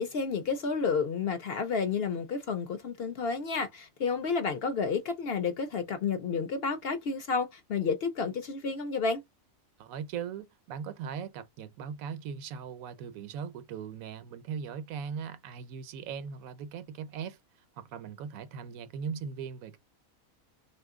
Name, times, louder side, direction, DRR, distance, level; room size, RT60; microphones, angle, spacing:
voice 1, 0.0-9.2, left 5 dB, 60° left, 0.7 m, -31 dB
voice 2, 9.8-17.4 17.8-19.8, right 7 dB, 90° right, 1.0 m, -39 dB
2.7 x 2.5 x 3.6 m
omnidirectional pair, 1.4 m